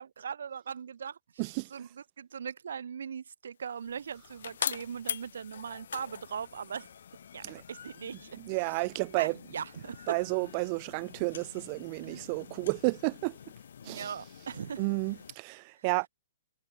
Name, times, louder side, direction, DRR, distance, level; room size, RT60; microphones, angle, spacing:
voice 1, 0.0-6.9 7.3-8.7 9.1-10.2 12.0-12.2 13.8-14.8 15.8-15.9, right 7 dB, 75° right, 6.2 m, -40 dB
voice 2, 1.4-1.7 7.4-7.6 8.4-9.4 10.1-13.4 13.8-14.1 14.8-16.1, right 31 dB, 30° right, 0.3 m, -31 dB
sound 1, 3.7-15.4, left 8 dB, 70° left, 3.1 m, -43 dB
hypercardioid pair, 160°, 0 cm